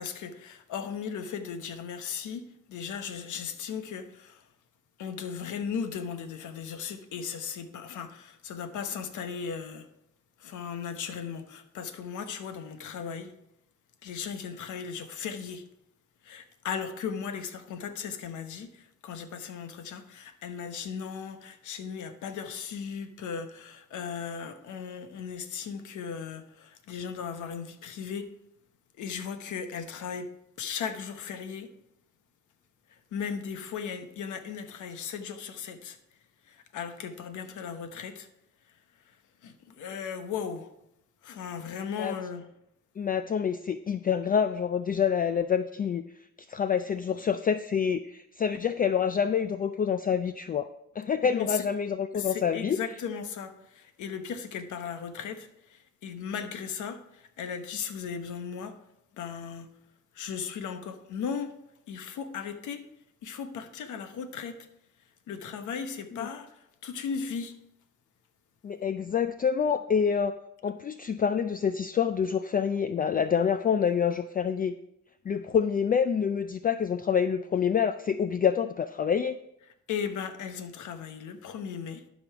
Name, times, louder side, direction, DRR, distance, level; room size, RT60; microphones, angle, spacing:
voice 1, 0.0-4.5 5.0-9.9 10.4-13.3 14.0-15.6 16.2-28.3 29.0-30.3 30.6-31.7 32.9-36.0 36.5-38.3 39.1-39.2 39.4-40.7 41.2-42.5 51.2-51.6 52.1-58.8 59.1-59.7 60.1-61.6 61.9-62.8 63.2-64.6 65.3-67.5 79.9-82.0, left 6 dB, 75° left, 1.1 m, -37 dB
voice 2, 43.0-46.0 46.5-50.7 51.0-52.8 66.1-66.3 68.6-70.4 70.6-74.8 75.3-79.4, left 7 dB, 30° left, 0.4 m, -27 dB
12.0 x 5.4 x 4.7 m
cardioid pair, 90°, 30 cm